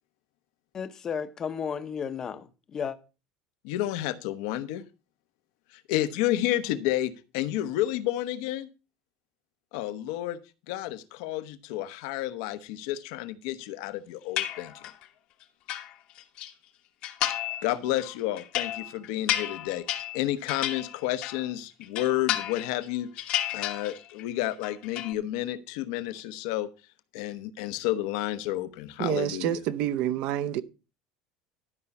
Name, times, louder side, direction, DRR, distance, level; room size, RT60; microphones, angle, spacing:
voice 1, 0.7-3.0, left 7 dB, 25° left, 0.8 m, -33 dB
voice 2, 3.6-4.8 5.7-8.7 9.7-10.4 10.7-14.8 17.6-26.7 27.1-29.5, left 14 dB, 70° left, 1.0 m, -31 dB
sound 1, 14.4-15.1 15.4-16.5 17.0-17.7 18.0-21.5 21.8-22.9 23.2-24.2 24.5-25.1, left 12 dB, 50° left, 1.2 m, -32 dB
voice 3, 29.0-30.6, right 11 dB, 50° right, 0.8 m, -28 dB
12.5 x 5.5 x 5.9 m
cardioid pair, 165°, 2 cm